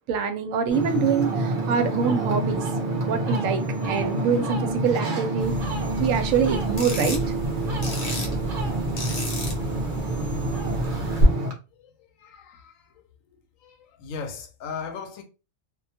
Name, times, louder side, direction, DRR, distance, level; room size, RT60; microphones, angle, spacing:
voice 1, 0.1-2.6 3.0-5.5 6.0-7.2, right 6 dB, 80° right, 1.0 m, -25 dB
Ocean, 0.7-11.5, right 2 dB, 50° right, 0.7 m, -27 dB
sound 1, 5.4-11.2, equal, 60° left, 0.9 m, -32 dB
voice 2, 12.2-12.7 13.6-15.2, left 5 dB, 85° left, 1.0 m, -37 dB
2.4 x 2.2 x 2.7 m
omnidirectional pair, 1.3 m